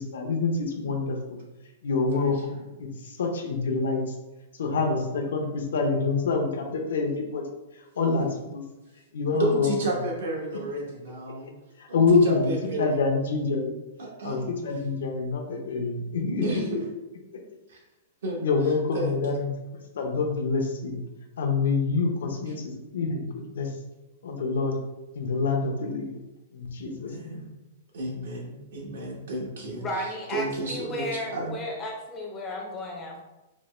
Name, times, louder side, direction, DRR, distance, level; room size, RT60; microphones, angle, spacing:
voice 1, 0.0-1.4 1.8-4.2 4.6-7.4 8.0-8.6 9.1-9.7 11.8-12.5 12.8-13.8 14.2-16.8 18.4-19.5 19.9-21.0 21.4-23.7 24.2-24.8 25.2-26.1 26.5-27.4, left 4 dB, 90° left, 2 dB, 0.6 m, -26 dB
voice 2, 9.3-11.5 11.9-13.0 14.0-14.4 16.4-16.8 17.7-17.8 18.2-18.4 18.9-19.4 26.8-27.5 27.9-31.6, right 2 dB, 75° right, -1 dB, 1.0 m, -32 dB
voice 3, 29.8-33.2, left 1 dB, 15° left, 0 dB, 0.4 m, -34 dB
4.1 x 2.1 x 3.1 m, 1.0 s
supercardioid pair, 170°, 0 cm